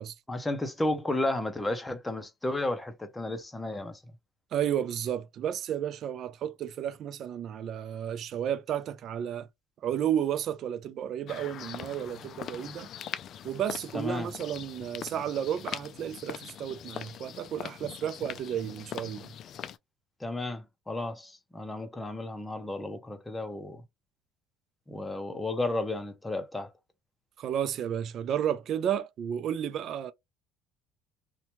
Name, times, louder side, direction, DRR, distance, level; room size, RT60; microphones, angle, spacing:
voice 1, 0.3-4.0 13.9-14.3 20.2-23.8 24.9-26.7, left 2 dB, 10° left, 0.6 m, -33 dB
voice 2, 4.5-9.5 9.8-12.9 13.4-19.3 27.4-30.1, right 9 dB, 50° right, 0.4 m, -32 dB
sound 1, 11.3-19.8, left 9 dB, 50° left, 0.3 m, -42 dB
2.7 x 2.2 x 2.9 m
cardioid pair, 115°, 0 cm